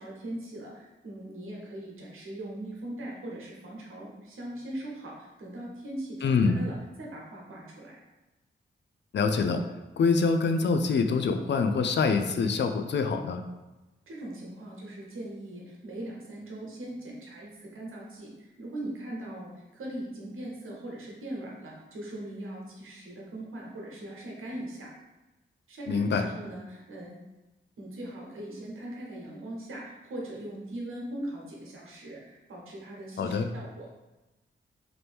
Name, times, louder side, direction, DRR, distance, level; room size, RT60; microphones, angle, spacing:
voice 1, 0.0-8.0 14.1-24.9 25.7-27.1 27.8-33.9, right 1 dB, 75° right, -3 dB, 0.9 m, -40 dB
voice 2, 6.2-6.6 9.1-9.6 10.0-13.4 25.9-26.2 33.2-33.5, left 4 dB, 60° left, 6 dB, 0.4 m, -25 dB
3.0 x 2.5 x 3.4 m, 1.0 s
cardioid pair, 55°, 21 cm